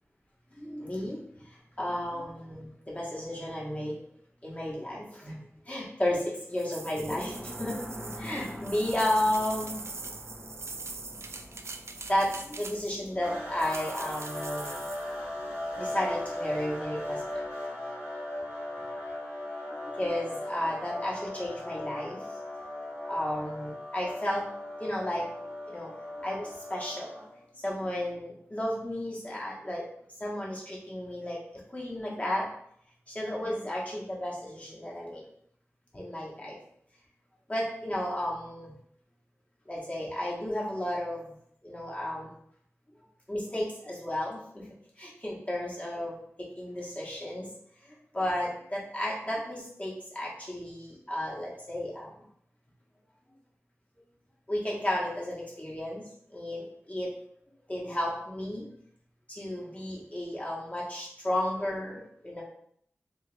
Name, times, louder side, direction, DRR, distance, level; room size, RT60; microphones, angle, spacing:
voice 1, 0.5-4.0 4.4-5.4 5.7-7.8 8.1-9.8 12.1-14.8 15.7-17.4 19.7-22.2 23.1-24.5 24.8-25.3 25.7-27.1 27.5-29.8 30.2-31.4 31.7-32.5 33.1-35.2 35.9-36.6 37.5-38.7 39.6-41.4 41.6-42.3 43.3-44.7 45.0-47.5 47.8-52.1 54.5-57.1 57.7-58.7 59.3-62.4, left 1 dB, 30° left, -4 dB, 1.3 m, -33 dB
sound 1, 6.6-13.1 13.6-15.1, right 3 dB, 65° right, 0.3 m, -42 dB
sound 2, 7.0-17.5, equal, ahead, 1.0 m, -46 dB
sound 3, 13.2-27.4, left 1 dB, 85° left, 1.5 m, -38 dB
3.3 x 2.9 x 3.3 m, 0.68 s
wide cardioid pair, 55°, 5 cm